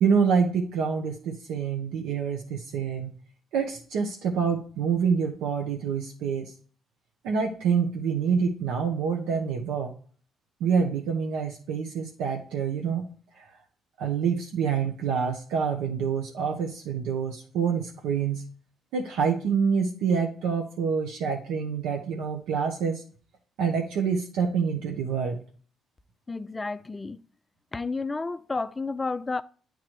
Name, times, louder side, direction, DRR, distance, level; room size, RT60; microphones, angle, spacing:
voice 1, 0.0-3.1 3.5-6.5 7.2-9.9 10.6-13.1 13.4-13.5 14.0-18.5 18.9-23.0 23.6-25.4, right 6 dB, 85° right, 0.8 m, -27 dB
voice 2, 26.3-27.2 27.7-29.4, left 3 dB, 25° left, 0.4 m, -31 dB
8.6 x 3.8 x 2.9 m
cardioid pair, 80°, 0 cm